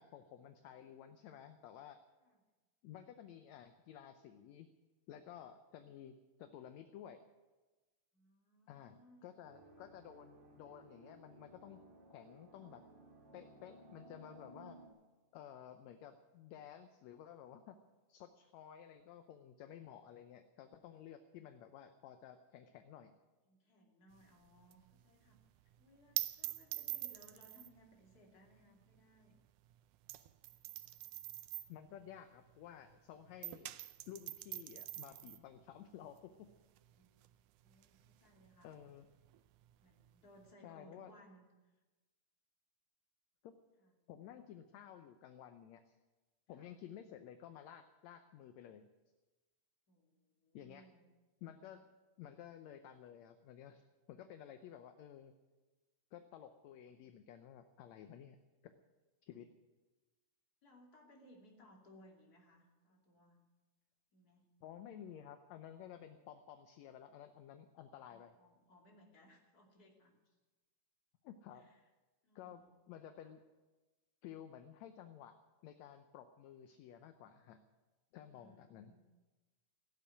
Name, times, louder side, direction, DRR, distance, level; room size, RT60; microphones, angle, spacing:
voice 1, 0.0-2.0 2.8-4.7 5.1-7.2 8.7-11.8 12.1-12.8 13.3-14.8 15.3-17.8 18.1-23.1 31.7-33.7 34.1-36.5 38.6-39.1 40.6-41.1 43.4-43.6 44.1-46.0 46.5-48.9 50.5-50.9 51.4-51.9 52.2-53.8 54.1-55.3 56.1-58.4 58.6-58.7 59.2-59.5 64.6-68.4 71.2-71.7 72.4-73.4 74.2-75.3 75.6-77.6 78.1-78.9, left 10 dB, 70° left, 8 dB, 1.8 m, -53 dB
voice 2, 8.1-9.4 10.4-10.6 23.5-25.4 25.8-29.4 31.6-32.2 36.9-37.2 37.6-38.7 39.8-41.8 43.8-43.9 46.5-46.7 49.9-51.0 60.6-63.4 64.1-64.5 65.9-66.1 68.1-70.1 71.5-71.9 72.2-72.7 73.2-73.4 78.3-79.0, equal, 30° left, 0 dB, 2.9 m, -64 dB
sound 1, 9.4-14.9, right 2 dB, 35° right, 2.7 m, -59 dB
sound 2, 24.1-33.0 33.3-40.5, right 16 dB, 80° right, 2.1 m, -46 dB
16.5 x 8.4 x 10.0 m, 1.2 s
omnidirectional pair, 3.7 m